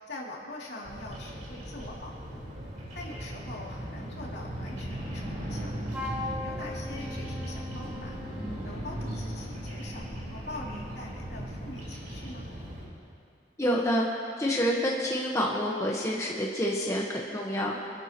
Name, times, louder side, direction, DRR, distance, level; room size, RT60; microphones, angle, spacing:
voice 1, 0.1-2.4 2.9-5.7 6.2-8.2 8.6-12.5, left 1 dB, 75° left, -3 dB, 2.8 m, -43 dB
Bird vocalization bird call bird song, 0.8-12.9, equal, 45° right, 4.3 m, -38 dB
Wind instrument woodwind instrument, 5.9-8.8, left 2 dB, 10° right, 1.6 m, -39 dB
voice 2, 13.6-14.1 14.4-17.8, equal, 15° left, -3 dB, 1.2 m, -28 dB
26.0 x 12.5 x 3.0 m, 2.3 s
head